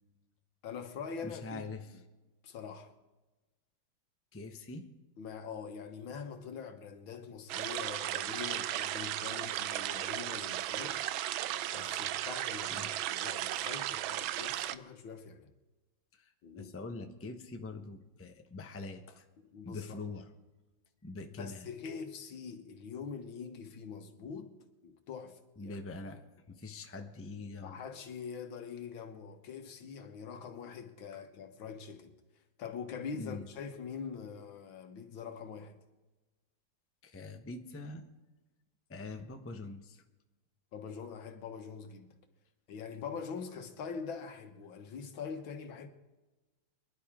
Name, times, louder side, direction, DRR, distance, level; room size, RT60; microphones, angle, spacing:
voice 1, 0.6-1.6 2.4-2.9 5.2-11.0 11.7-15.5 16.4-16.7 19.4-20.0 21.4-24.5 24.8-25.8 27.6-32.1 32.6-35.8 40.7-42.2 42.7-45.9, left 6 dB, 90° left, 2.0 m, -44 dB
voice 2, 1.2-2.0 4.3-4.9 12.7-12.9 16.1-19.3 19.6-20.3 21.0-21.7 25.6-26.2 26.5-27.8 33.1-33.5 37.0-38.0 38.9-40.0, left 3 dB, 15° left, 0.6 m, -44 dB
sound 1, 7.5-14.8, right 13 dB, 90° right, 1.4 m, -35 dB
24.5 x 11.5 x 3.7 m
omnidirectional pair, 2.1 m